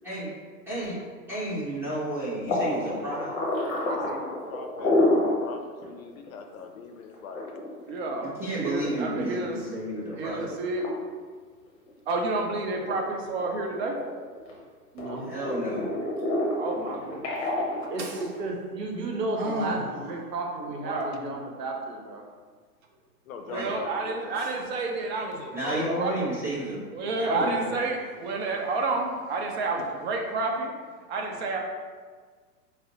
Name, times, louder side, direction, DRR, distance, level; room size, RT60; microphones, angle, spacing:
voice 1, 1.3-3.3 8.4-10.5 15.3-15.9 23.5-23.7 25.5-26.8 27.2-27.7, right 1 dB, 5° right, -10 dB, 0.7 m, -31 dB
sound 1, 2.5-5.4 5.8-5.9 6.3-6.4 7.1-9.4 9.9-10.3 10.8-10.9 11.5-12.4 12.7-14.6 15.0-18.5, left 1 dB, 30° left, 0.8 m, -28 dB
voice 2, 3.1-3.5 3.9-7.6 23.2-24.4, left 5 dB, 60° left, 5 dB, 0.5 m, -42 dB
voice 3, 7.9-8.3 8.6-9.6 10.2-10.8 12.1-14.0 16.5-17.3 17.8-18.2 19.4-19.9 20.7-21.1 23.4-26.1 26.9-30.7 31.1-31.6, right 3 dB, 45° right, 1 dB, 0.6 m, -30 dB
voice 4, 14.9-15.3 17.9-22.2, right 2 dB, 85° right, 1 dB, 0.8 m, -33 dB
4.1 x 2.0 x 2.7 m, 1.5 s
hypercardioid pair, 125°, 47 cm